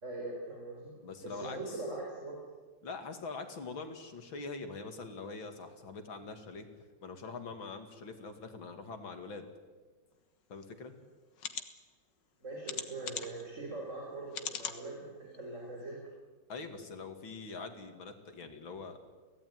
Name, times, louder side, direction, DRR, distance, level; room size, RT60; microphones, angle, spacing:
voice 1, 0.0-2.4 12.4-16.0, right 2 dB, 35° right, -1 dB, 4.9 m, -42 dB
voice 2, 1.0-1.8 2.8-6.7 7.0-9.5 10.5-10.9 16.5-19.0, left 4 dB, 85° left, 6 dB, 3.1 m, -44 dB
sound 1, 10.6-10.7 11.4-11.6 12.6-13.4 14.3-14.8 15.3-15.4 15.8-15.9, left 7 dB, 65° left, 2.0 m, -39 dB
24.0 x 17.0 x 9.5 m, 1.4 s
omnidirectional pair, 2.1 m